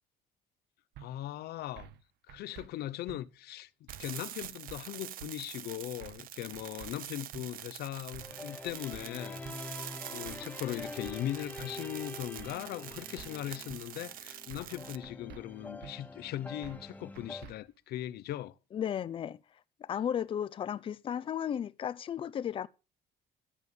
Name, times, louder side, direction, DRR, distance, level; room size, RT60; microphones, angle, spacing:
voice 1, 1.0-1.9 2.3-9.4 10.1-18.5, left 13 dB, 65° left, 0.9 m, -39 dB
sound 1, 1.0-1.1 1.8-2.0 2.3-2.7 3.1-3.2 3.9-4.2 4.4-4.8 5.2-5.3 6.0-6.3 6.5-6.9 7.3-7.5 8.1-8.4 8.7-9.0 9.4-9.6 10.3-10.5 10.8-11.2 11.6-11.7 12.4-12.7 12.9-13.3 13.7-13.8 14.5-14.8 15.0-15.4 15.8-15.9 16.6-16.9 17.2-17.5, right 11 dB, 75° right, 1.2 m, -49 dB
sound 2, 3.9-15.0, right 13 dB, 55° right, 0.7 m, -46 dB
sound 3, 8.2-17.5, left 2 dB, 10° left, 0.9 m, -46 dB
voice 2, 18.7-19.4 19.8-22.7, left 9 dB, 30° left, 0.6 m, -34 dB
13.5 x 7.0 x 8.2 m
cardioid pair, 175°, 17 cm